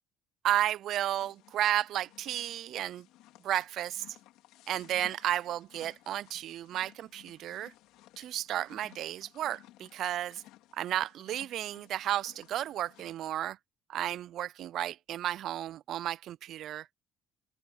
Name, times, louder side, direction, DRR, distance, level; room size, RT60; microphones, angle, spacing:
voice 1, 0.4-3.1 3.4-4.0 4.7-7.7 8.2-10.4 10.7-13.6 13.9-16.9, right 12 dB, 55° right, 0.3 m, -33 dB
sound 1, 1.1-13.3, left 16 dB, 80° left, 3.2 m, -58 dB
open air
cardioid pair, 130°, 0 cm